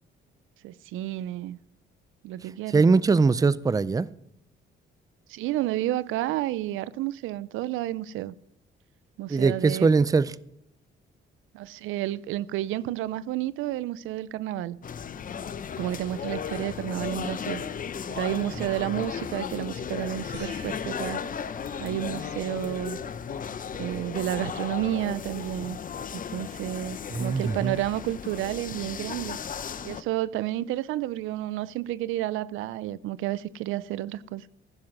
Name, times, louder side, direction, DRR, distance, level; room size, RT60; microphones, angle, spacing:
voice 1, 0.6-1.6 2.2-2.8 5.3-8.3 9.2-9.9 11.5-14.8 15.8-17.6 18.1-21.2 21.8-23.0 23.8-25.8 26.1-29.4 29.8-34.5, right 14 dB, 90° right, 0.5 m, -31 dB
voice 2, 2.7-4.1 9.3-10.3 18.6-18.7 27.1-27.8, right 4 dB, 20° right, 0.4 m, -21 dB
sound 1, 14.8-30.0, left 7 dB, 45° left, 0.7 m, -35 dB
sound 2, 20.3-22.9 23.5-24.1 24.5-24.6 27.8-27.9, right 6 dB, 60° right, 2.7 m, -52 dB
15.5 x 7.3 x 6.0 m
cardioid pair, 90°, 20 cm